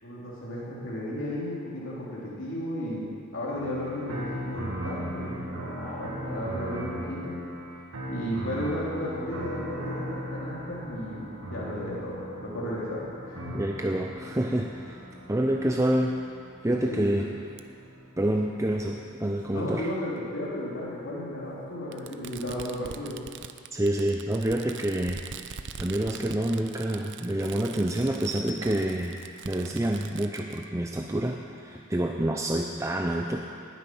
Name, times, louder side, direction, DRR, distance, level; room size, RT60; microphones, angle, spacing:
voice 1, 0.0-7.4 8.1-13.6 16.8-17.1 19.5-23.2, equal, 60° left, -7 dB, 3.2 m, -34 dB
sound 1, 3.5-20.7 21.5-23.4, equal, 80° right, 2.4 m, -39 dB
voice 2, 13.5-15.0 15.3-16.1 16.6-17.2 18.2-19.9 23.7-25.2 25.8-29.2 29.4-33.4, right 1 dB, 15° right, 1 dB, 0.6 m, -27 dB
Fireworks, 17.6-17.7 18.8-18.9 20.2-20.3 21.9-30.6, right 7 dB, 55° right, 0.6 m, -43 dB
19.0 x 9.3 x 6.1 m, 2.3 s
head